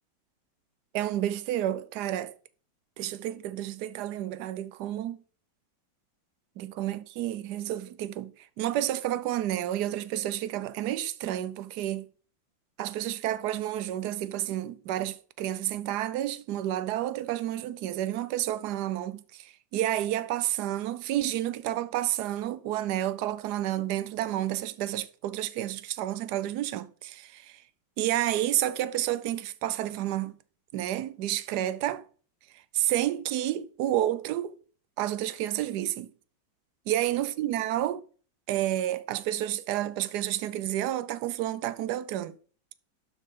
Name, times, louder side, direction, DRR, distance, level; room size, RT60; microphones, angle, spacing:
voice 1, 0.9-2.3 3.0-5.2 6.6-12.1 12.8-27.6 28.0-30.3 30.7-32.0 32.7-34.5 35.0-36.1 36.9-38.0 38.5-42.4, right 13 dB, 65° right, 1.1 m, -30 dB
12.0 x 6.6 x 3.7 m
omnidirectional pair, 2.1 m